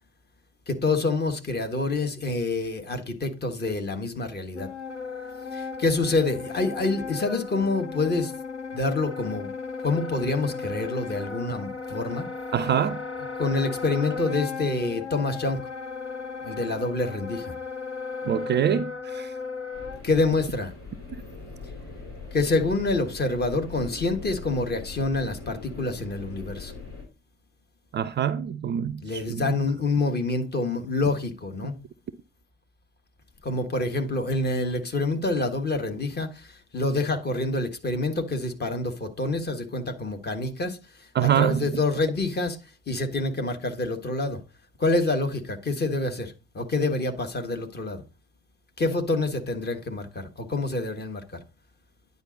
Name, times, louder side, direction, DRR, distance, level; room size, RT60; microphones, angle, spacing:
voice 1, 0.7-4.7 5.5-8.3 8.7-9.5 9.8-12.3 13.4-15.6 16.4-17.5 20.0-20.7 22.3-26.7 29.0-31.7 33.4-36.3 36.7-40.8 41.2-42.6 42.9-44.4 44.8-48.0 48.8-51.4, left 2 dB, 30° left, 1.5 m, -27 dB
Wind instrument woodwind instrument, 4.5-20.0, left 5 dB, 90° left, 0.7 m, -35 dB
voice 2, 12.5-13.0 18.2-19.3 27.9-29.6 41.1-41.6, right 9 dB, 30° right, 0.5 m, -25 dB
sound 1, 19.7-27.0, left 4 dB, 65° left, 3.9 m, -41 dB
9.8 x 5.3 x 4.0 m
figure-of-eight pair, 50°, 34 cm